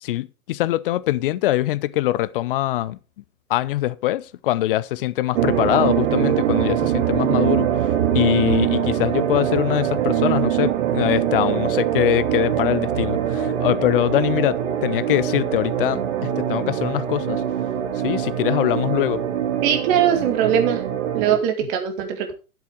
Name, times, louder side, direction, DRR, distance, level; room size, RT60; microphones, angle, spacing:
voice 1, 0.0-3.0 3.5-7.9 8.1-17.4 18.0-19.2 21.6-21.7, left 15 dB, 40° left, 0.6 m, -23 dB
sound 1, 5.3-21.4, right 10 dB, 50° right, 2.0 m, -23 dB
voice 2, 19.6-20.8 21.1-22.3, right 9 dB, 35° right, 2.4 m, -21 dB
11.0 x 7.9 x 4.9 m
figure-of-eight pair, 110°, 44 cm